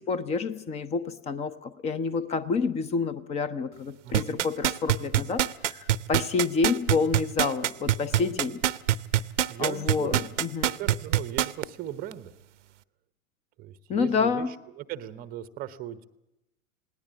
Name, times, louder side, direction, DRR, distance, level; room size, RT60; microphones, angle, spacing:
voice 1, 0.0-8.6 9.6-10.7 13.9-14.6, left 4 dB, 15° left, 16 dB, 0.7 m, -28 dB
voice 2, 4.0-4.5 8.2-8.4 9.5-10.2 10.6-12.3 13.6-16.1, right 12 dB, 20° right, 15 dB, 0.8 m, -38 dB
sound 1, 4.1-11.6 12.1-12.2, right 12 dB, 60° right, 0.7 m, -24 dB
19.5 x 18.0 x 8.5 m, 0.90 s
figure-of-eight pair, 100°, 42 cm